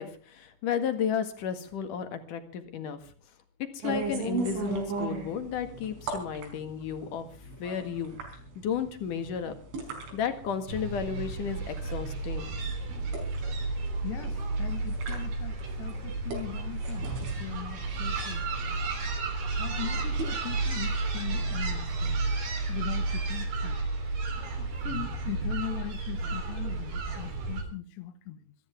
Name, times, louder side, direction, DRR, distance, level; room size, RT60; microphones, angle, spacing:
voice 1, 0.0-3.0 3.7-7.3 7.6-8.2 8.6-9.5 10.1-12.5, left 7 dB, 55° left, 9 dB, 2.9 m, -33 dB
sound 1, 3.8-21.4, right 4 dB, 85° right, 7.2 m, -39 dB
sound 2, 10.7-27.6, right 3 dB, 50° right, 5.0 m, -32 dB
voice 2, 14.0-17.1 17.4-18.6 19.6-22.2 22.7-23.8 24.6-28.6, left 13 dB, 75° left, 9 dB, 3.3 m, -40 dB
26.0 x 14.5 x 3.5 m, 0.41 s
omnidirectional pair, 5.3 m